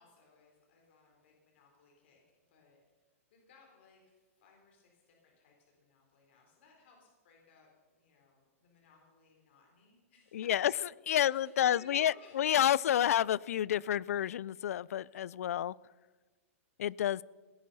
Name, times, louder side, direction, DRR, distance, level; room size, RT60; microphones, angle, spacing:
voice 1, 0.0-2.2 2.5-2.8 3.3-10.7 11.2-12.5, left 5 dB, 50° left, 0 dB, 3.9 m, -62 dB
voice 2, 10.3-10.7 11.1-15.7 16.8-17.2, left 11 dB, 80° left, 24 dB, 0.3 m, -29 dB
17.0 x 10.5 x 5.5 m, 1.3 s
supercardioid pair, 170°, 8 cm